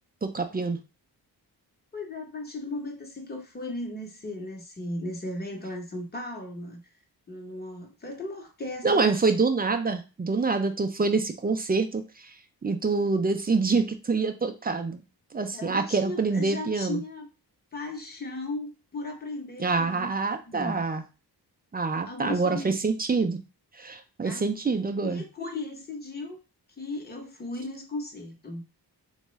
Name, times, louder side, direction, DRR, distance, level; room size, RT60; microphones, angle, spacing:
voice 1, 0.2-0.8 8.8-12.0 12.6-15.0 15.3-17.0 19.6-21.0 21.7-23.4 23.8-25.2, right 4 dB, 25° right, 6 dB, 0.4 m, -26 dB
voice 2, 1.9-6.8 7.3-9.2 15.5-17.3 17.7-20.9 22.1-22.8 24.2-24.5 25.0-26.4 26.8-28.6, left 2 dB, 25° left, 2 dB, 0.9 m, -36 dB
3.6 x 2.3 x 3.0 m, 0.30 s
wide cardioid pair, 90°, 41 cm